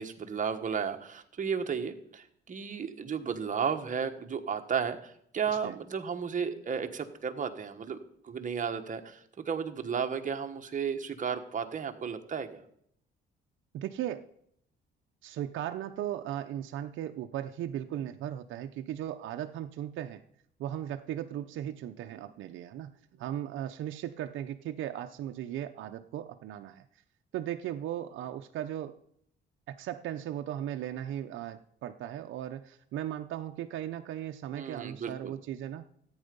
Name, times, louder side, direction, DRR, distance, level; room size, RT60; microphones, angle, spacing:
voice 1, 0.0-8.0 8.2-12.6 34.5-35.3, right 6 dB, 40° right, 5 dB, 1.4 m, -33 dB
voice 2, 13.7-14.3 15.2-20.2 20.6-26.8 27.3-29.0 29.7-35.8, right 11 dB, 80° right, 6 dB, 0.6 m, -37 dB
14.0 x 8.9 x 5.3 m, 0.70 s
cardioid pair, 90°, 20 cm